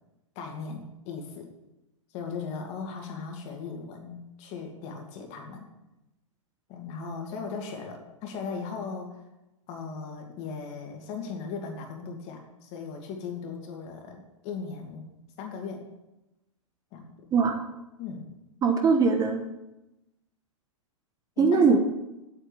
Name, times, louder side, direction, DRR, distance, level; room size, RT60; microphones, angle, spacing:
voice 1, 0.4-1.5 2.1-5.7 6.7-9.2 9.7-15.1 15.4-15.8 16.9-17.0 18.0-18.3 21.4-21.7, left 5 dB, 40° left, 3 dB, 2.4 m, -38 dB
voice 2, 18.6-19.4 21.4-21.8, right 5 dB, 20° right, 5 dB, 1.0 m, -21 dB
8.4 x 7.3 x 7.1 m, 0.96 s
hypercardioid pair, 110°, 17 cm